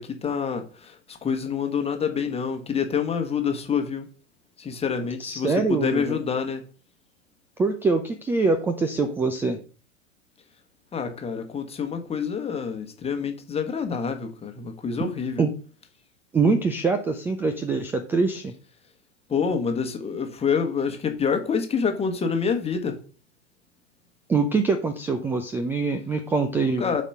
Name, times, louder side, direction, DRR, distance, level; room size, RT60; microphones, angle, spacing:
voice 1, 0.0-4.1 4.6-6.7 10.9-15.4 19.3-23.0 26.8-27.0, left 6 dB, 15° left, 1.2 m, -27 dB
voice 2, 5.2-6.2 7.6-9.6 15.4-15.5 16.3-18.5 24.3-27.0, right 4 dB, 5° right, 0.3 m, -24 dB
7.0 x 4.3 x 5.4 m
figure-of-eight pair, 95°, 38 cm